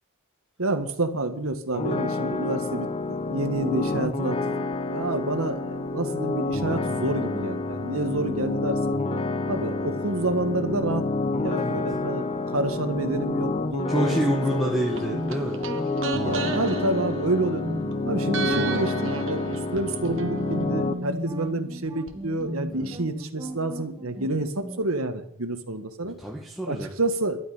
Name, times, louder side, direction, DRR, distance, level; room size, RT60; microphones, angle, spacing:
voice 1, 0.6-9.0 9.4-12.3 12.5-14.2 14.6-15.2 16.2-17.8 18.0-26.2 26.7-27.4, right 2 dB, 80° right, 8 dB, 1.8 m, -29 dB
sound 1, 1.7-20.9, left 2 dB, 25° left, 1.0 m, -29 dB
voice 2, 13.9-15.6 22.7-22.9 26.0-26.9, equal, ahead, -3 dB, 1.8 m, -27 dB
sound 2, 15.0-17.9 18.3-22.1 22.4-22.5, right 3 dB, 60° right, 1.5 m, -33 dB
sound 3, 15.1-24.9, equal, 20° right, 1.6 m, -38 dB
12.5 x 9.0 x 9.4 m, 0.64 s
head